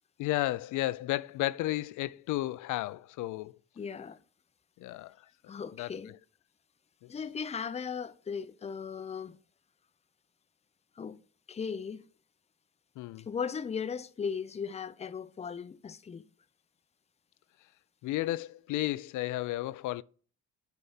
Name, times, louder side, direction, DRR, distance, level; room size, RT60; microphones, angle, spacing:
voice 1, 0.2-3.5 4.8-5.1 5.8-5.9 7.0-7.1 13.0-13.3 18.0-20.0, left 16 dB, 80° left, 0.4 m, -33 dB
voice 2, 3.8-4.2 5.5-6.1 7.1-9.4 11.0-11.2 11.5-12.1 13.3-16.3, left 6 dB, 20° left, 0.5 m, -37 dB
8.2 x 4.2 x 5.6 m
cardioid pair, 90°, 30 cm